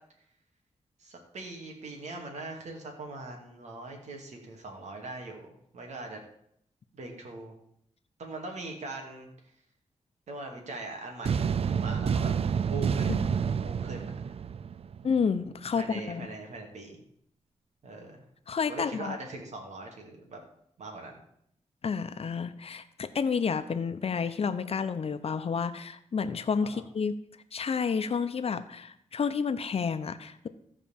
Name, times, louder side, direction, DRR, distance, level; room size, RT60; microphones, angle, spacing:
voice 1, 1.0-6.2 6.9-7.5 8.2-9.3 10.3-12.3 12.7-13.1 13.6-14.1 15.7-17.0 17.8-18.2 18.7-20.4 20.8-21.2 26.6-26.8, right 2 dB, 75° right, 1 dB, 2.6 m, -41 dB
sound 1, 11.3-15.2, right 7 dB, 55° right, 0.4 m, -29 dB
voice 2, 15.0-16.2 18.5-19.2 21.8-27.1 27.5-30.5, left 6 dB, 55° left, 10 dB, 0.9 m, -30 dB
14.5 x 5.0 x 7.3 m, 0.70 s
cardioid pair, 80°, 12 cm